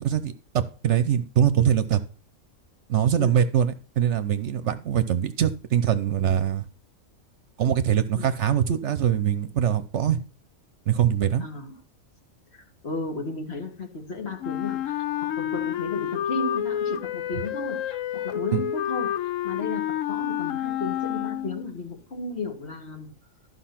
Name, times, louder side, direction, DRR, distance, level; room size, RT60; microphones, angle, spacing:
voice 1, 0.0-2.0 2.9-6.6 7.6-10.2 10.9-11.5 18.5-18.6, right 9 dB, 65° right, 12 dB, 1.0 m, -23 dB
voice 2, 11.4-11.7 12.5-19.2 19.4-23.1, left 3 dB, 50° left, 3 dB, 2.0 m, -34 dB
Wind instrument woodwind instrument, 14.4-21.7, left 11 dB, 75° left, 1.0 m, -29 dB
12.0 x 5.6 x 5.8 m, 0.36 s
omnidirectional pair, 1.4 m